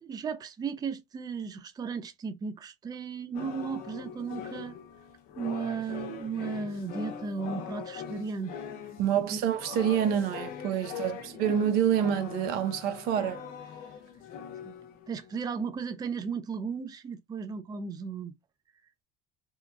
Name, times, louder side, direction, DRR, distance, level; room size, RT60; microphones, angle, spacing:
voice 1, 0.0-4.7 5.4-8.5 9.3-9.4 10.9-11.0 14.6-14.7 15.1-18.3, right 5 dB, 25° right, 0.4 m, -35 dB
sound 1, 3.3-15.4, left 7 dB, 60° left, 0.7 m, -42 dB
voice 2, 9.0-13.4, right 9 dB, 70° right, 0.6 m, -27 dB
2.8 x 2.2 x 2.4 m
supercardioid pair, 90°, 17 cm